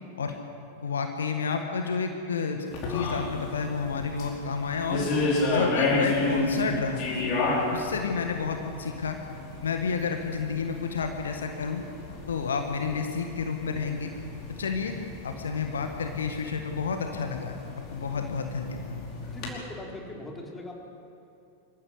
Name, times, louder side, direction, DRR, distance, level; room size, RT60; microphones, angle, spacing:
voice 1, 0.8-5.1 5.5-7.1 7.7-9.2 9.6-11.8 12.3-14.1 14.6-15.0 15.2-17.6 17.9-18.9, left 5 dB, 70° left, 5 dB, 1.7 m, -30 dB
sound 1, 2.7-19.5, left 2 dB, 40° left, 4.9 m, -32 dB
voice 2, 19.3-20.7, left 2 dB, 10° left, 0 dB, 4.2 m, -40 dB
25.0 x 15.0 x 8.3 m, 2.8 s
figure-of-eight pair, 90°, 0 cm